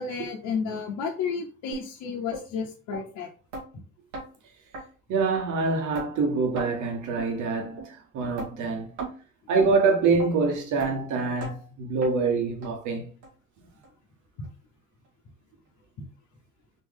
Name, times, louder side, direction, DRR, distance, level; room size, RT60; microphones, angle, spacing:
voice 1, 0.0-3.3, left 6 dB, 55° left, 1.1 m, -32 dB
sound 1, 1.7-1.9 2.3-2.4 2.9-3.0 3.5-3.7 4.1-4.3 4.7-4.8 5.3-5.4 5.9-6.1 6.6-6.7 7.2-7.3 7.8-7.9 8.4-8.5 9.0-9.2 9.6-9.7 10.2-10.3 10.8-10.9 11.4-11.5 12.0-12.1 12.6-12.7 13.2-13.3 13.8-13.9 14.4-14.5, right 3 dB, 90° right, 2.1 m, -36 dB
voice 2, 5.1-8.9 9.5-13.0, right 4 dB, 60° right, 1.7 m, -25 dB
4.4 x 3.1 x 3.8 m
supercardioid pair, 100°, 34 cm